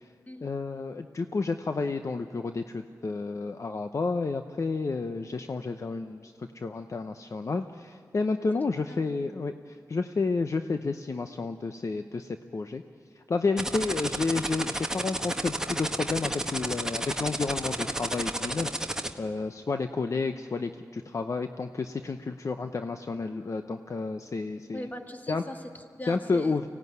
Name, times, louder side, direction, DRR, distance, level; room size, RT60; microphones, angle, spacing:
voice 1, 0.4-12.8 13.2-24.8 25.3-25.4 26.1-26.7, left 4 dB, 50° left, 7 dB, 0.8 m, -31 dB
sound 1, 13.6-19.1, right 1 dB, 10° right, 1.3 m, -31 dB
voice 2, 24.7-26.6, left 1 dB, 25° left, 4 dB, 1.9 m, -40 dB
24.5 x 17.5 x 9.5 m, 2.3 s
wide cardioid pair, 90°, 6 cm